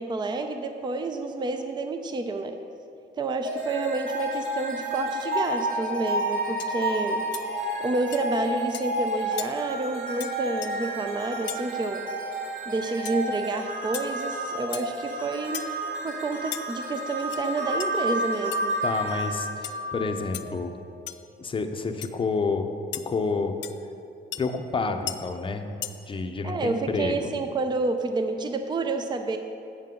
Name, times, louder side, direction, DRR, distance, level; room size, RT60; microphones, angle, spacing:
voice 1, 0.0-2.6 3.2-7.2 7.8-12.0 12.7-15.6 16.0-18.8 26.4-29.4, right 3 dB, 20° right, 7 dB, 0.5 m, -29 dB
sound 1, 3.4-20.6, right 1 dB, 70° right, 2.1 m, -31 dB
sound 2, 6.0-6.2 6.6-6.8 7.3-7.5 8.1-8.2 8.7-8.9 9.4-9.5 10.2-10.3 10.6-10.7 11.5-11.6 13.0-13.2 13.9-14.1 14.7-14.9 15.5-15.8 16.5-16.6 17.2-17.4 17.8-17.9 18.5-18.6 19.6-19.8 20.3-20.4 21.1-21.2 22.0-22.1 22.9-23.0 23.6-23.7 24.3-24.4 25.1-25.2 25.8-25.9, left 13 dB, 65° left, 0.4 m, -35 dB
voice 2, 18.8-20.7 21.4-22.7 23.0-23.6 24.4-25.7 26.1-27.3, left 4 dB, 25° left, 6 dB, 0.6 m, -29 dB
8.5 x 7.4 x 3.8 m, 2.7 s
cardioid pair, 90°, 20 cm